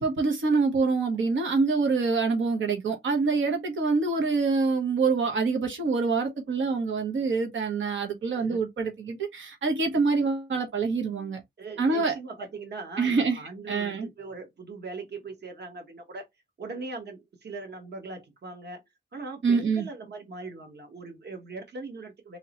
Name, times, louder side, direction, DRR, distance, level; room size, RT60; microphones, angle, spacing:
voice 1, 0.0-11.4 11.8-12.1 13.0-13.4 13.7-14.1 19.4-19.9, right 4 dB, 85° right, 1.1 m, -26 dB
voice 2, 11.6-16.2 16.6-18.8 19.1-22.4, right 3 dB, 60° right, 1.2 m, -40 dB
3.7 x 2.9 x 2.9 m
wide cardioid pair, 115°, 19 cm